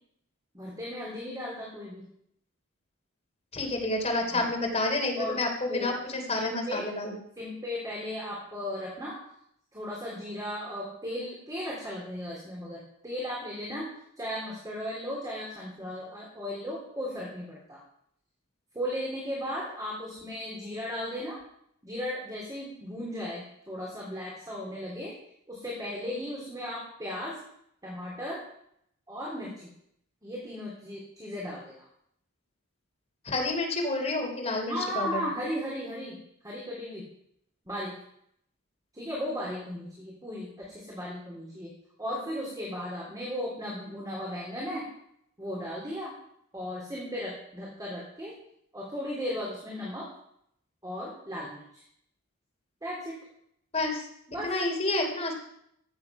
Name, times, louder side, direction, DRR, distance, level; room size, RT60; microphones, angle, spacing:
voice 1, 0.5-2.0 4.3-4.5 5.1-5.4 5.7-6.0 6.3-6.9 7.4-9.2 9.7-13.9 14.2-17.8 18.7-21.4 21.8-25.1 25.5-27.4 27.8-28.4 29.1-29.7 30.2-31.6 34.7-36.2 36.4-37.1 37.7-37.9 38.9-41.7 42.0-44.8 45.4-46.1 46.5-48.3 48.7-50.1 50.8-51.8 52.8-53.2 54.3-54.5, equal, 20° right, -5 dB, 3.6 m, -36 dB
voice 2, 3.5-7.1 33.2-35.2 53.7-54.1 54.4-55.3, left 2 dB, 30° left, 1 dB, 3.2 m, -29 dB
14.5 x 8.6 x 5.9 m, 0.73 s
head